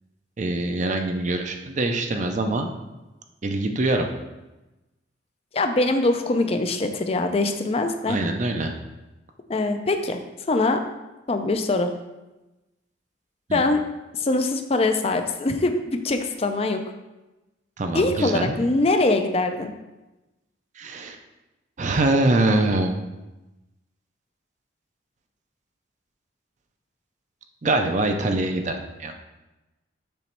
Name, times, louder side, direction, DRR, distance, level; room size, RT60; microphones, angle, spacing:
voice 1, 0.4-2.7 3.4-4.1 8.1-8.7 13.5-13.6 17.8-18.5 20.8-21.2 21.8-22.9 27.6-28.7 29.0-29.1, right 2 dB, 40° right, 5 dB, 0.5 m, -23 dB
voice 2, 5.5-8.2 9.5-10.2 10.5-10.8 11.3-11.9 13.5-13.8 14.1-16.8 17.9-19.7, left 2 dB, 30° left, 7 dB, 0.4 m, -23 dB
6.9 x 3.1 x 4.4 m, 1.0 s
head